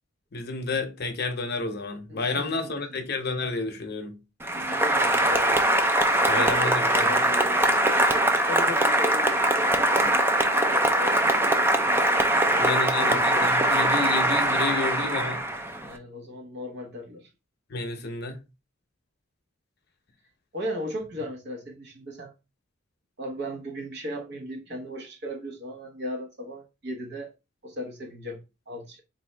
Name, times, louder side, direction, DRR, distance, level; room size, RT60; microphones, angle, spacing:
voice 1, 0.3-4.2 6.3-6.9 12.6-15.4 17.7-18.4, left 3 dB, 50° left, 0.7 m, -30 dB
voice 2, 2.1-3.0 4.5-5.9 6.3-11.9 12.3-14.0 15.8-17.3 20.5-22.3 23.2-27.3 27.6-29.0, left 1 dB, 55° right, 1.0 m, -37 dB
Applause, 4.4-15.9, right 1 dB, 10° right, 0.4 m, -22 dB
4.1 x 2.6 x 3.3 m
head